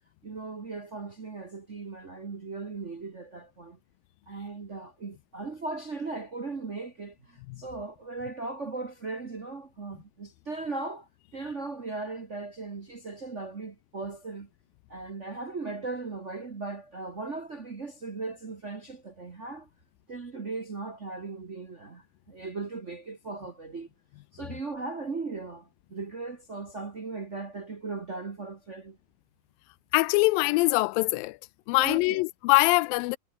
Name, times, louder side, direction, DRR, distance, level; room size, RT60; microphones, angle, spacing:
voice 1, 0.2-3.8 4.3-14.5 14.9-19.7 20.1-23.9 24.3-29.0 31.8-32.2, right 3 dB, 80° right, 0.6 m, -38 dB
voice 2, 29.9-31.4 31.7-33.2, left 22 dB, 85° left, 2.2 m, -23 dB
omnidirectional pair, 4.1 m